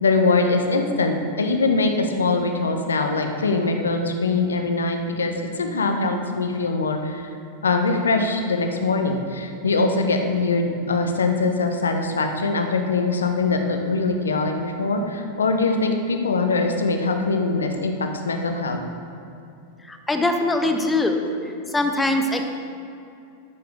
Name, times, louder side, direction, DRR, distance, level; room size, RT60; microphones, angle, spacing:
voice 1, 0.0-7.3 7.6-18.8, left 3 dB, 70° left, 5 dB, 0.9 m, -22 dB
voice 2, 19.9-21.2 21.7-22.4, left 2 dB, 10° left, 4 dB, 0.9 m, -22 dB
13.0 x 6.8 x 3.4 m, 2.6 s
figure-of-eight pair, 90°, 0 cm